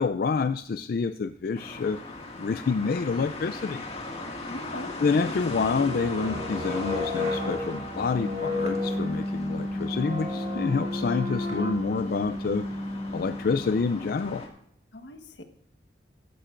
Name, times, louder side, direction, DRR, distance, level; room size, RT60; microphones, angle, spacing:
voice 1, 0.0-2.0 2.4-3.8 5.0-12.7 13.1-14.4, left 4 dB, 55° left, 10 dB, 0.4 m, -28 dB
sound 1, 1.5-14.5, left 2 dB, 35° left, 2.0 m, -39 dB
voice 2, 4.5-4.9 5.3-5.4 9.7-10.0 14.9-15.4, left 1 dB, 80° left, 6 dB, 1.3 m, -41 dB
sound 2, 5.1-13.9, left 1 dB, 40° right, 2.5 m, -32 dB
15.5 x 12.0 x 2.5 m, 0.72 s
head